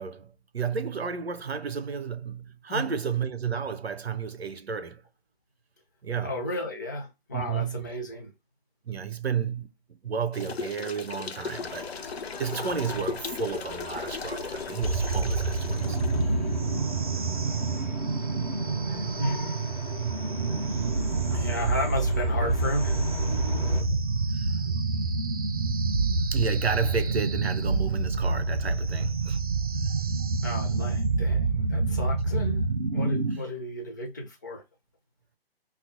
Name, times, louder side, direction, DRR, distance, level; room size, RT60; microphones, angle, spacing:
voice 1, 0.0-5.0 6.0-6.4 7.3-7.9 8.8-11.9 12.4-16.4 20.7-20.8 23.5-24.0 24.3-24.5 26.3-29.5, right 6 dB, 80° right, 0.6 m, -32 dB
voice 2, 6.2-8.3 19.2-19.4 21.3-23.1 30.4-34.6, left 1 dB, 20° left, 0.5 m, -33 dB
sound 1, 10.3-16.2, left 4 dB, 80° left, 0.6 m, -37 dB
sound 2, 11.5-23.8, left 4 dB, 50° left, 0.9 m, -40 dB
sound 3, 14.8-33.4, right 3 dB, 40° right, 0.4 m, -27 dB
5.4 x 2.3 x 2.5 m
figure-of-eight pair, 140°, 31 cm